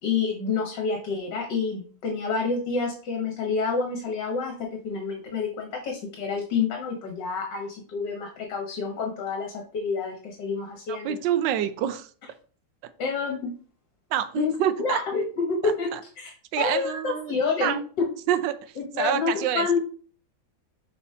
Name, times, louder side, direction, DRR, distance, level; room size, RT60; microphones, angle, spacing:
voice 1, 0.0-4.5 4.8-11.2 13.0-13.5 14.3-14.5 14.8-15.9 16.2-16.3 16.6-18.1 18.8-19.8, left 4 dB, 70° left, 1 dB, 1.7 m, -28 dB
voice 2, 10.9-12.1 14.1-15.0 15.6-16.0 16.5-17.8 18.3-18.6 19.0-19.8, right 10 dB, 75° right, 12 dB, 1.3 m, -27 dB
6.8 x 5.2 x 2.7 m, 0.42 s
omnidirectional pair, 2.1 m